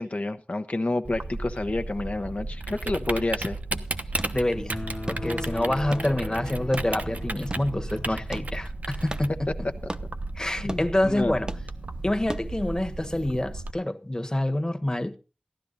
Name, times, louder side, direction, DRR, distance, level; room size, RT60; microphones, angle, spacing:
voice 1, 0.0-3.6 8.1-8.2 10.6-11.4, left 2 dB, 60° left, 1.0 m, -29 dB
Typing, 1.0-13.7, right 2 dB, 70° right, 1.1 m, -34 dB
sound 1, 3.8-12.8, right 1 dB, 25° right, 0.9 m, -41 dB
voice 2, 4.3-4.8 5.1-9.5 10.4-11.5 12.0-15.2, left 1 dB, 25° left, 1.4 m, -27 dB
sound 2, 4.7-8.2, left 2 dB, 40° left, 0.7 m, -37 dB
15.5 x 12.0 x 4.0 m
wide cardioid pair, 50°, 3 cm